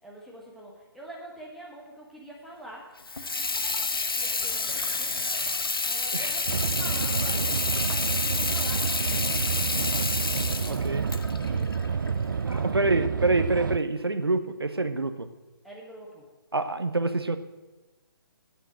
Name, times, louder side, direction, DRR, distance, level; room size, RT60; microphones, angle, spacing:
voice 1, 0.0-2.9 4.1-5.3 5.8-9.3 11.4-13.2 15.6-16.3, right 1 dB, ahead, -4 dB, 1.8 m, -46 dB
Water tap faucet / Sink (filling or washing), 3.0-12.6, left 3 dB, 70° left, 1.1 m, -29 dB
sound 1, 6.5-13.8, right 6 dB, 55° right, 0.4 m, -29 dB
voice 2, 10.3-11.0 12.4-15.3 16.5-17.4, right 2 dB, 80° right, 10 dB, 1.0 m, -27 dB
8.9 x 6.9 x 8.6 m, 1.2 s
figure-of-eight pair, 140°, 13 cm